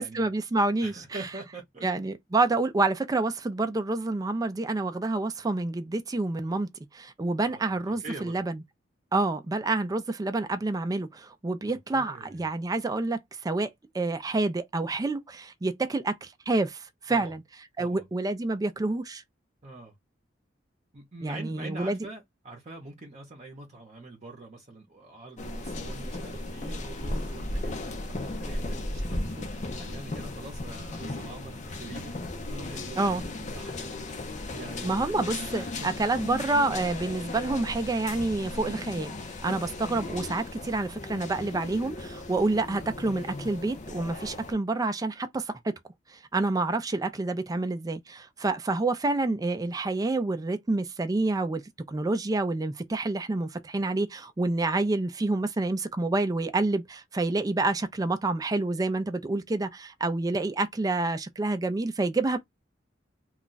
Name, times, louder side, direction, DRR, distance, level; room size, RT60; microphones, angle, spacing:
voice 1, 0.0-0.9 1.8-6.7 6.9-8.6 9.1-17.4 17.8-19.2 21.2-22.0 33.0-33.2 34.8-39.1 39.4-45.7 46.1-51.6 51.9-62.4, right 2 dB, 20° right, 0.4 m, -28 dB
voice 2, 0.8-1.9 7.5-8.4 11.7-12.5 17.1-17.3 17.8-18.0 19.6-20.0 20.9-29.5 29.8-34.1 34.5-35.2 35.5-35.9, right 2 dB, 40° right, 0.7 m, -44 dB
sound 1, 25.4-44.5, left 2 dB, 40° left, 0.6 m, -36 dB
2.4 x 2.2 x 3.8 m
head